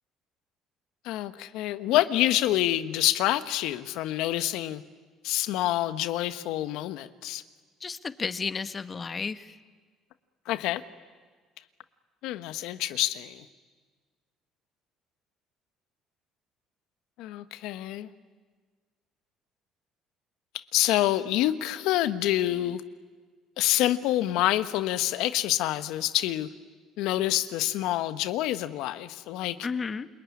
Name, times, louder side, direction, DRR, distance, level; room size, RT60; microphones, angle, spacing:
voice 1, 1.0-4.8 5.2-7.4 10.5-10.8 12.2-13.4 17.2-18.1 20.7-22.8 23.6-26.5 27.0-29.6, left 14 dB, 75° left, 12 dB, 1.2 m, -27 dB
voice 2, 7.8-9.6 29.6-30.1, left 5 dB, 35° left, 11 dB, 1.3 m, -32 dB
28.5 x 21.0 x 9.9 m, 1.5 s
supercardioid pair, 80°, 0 cm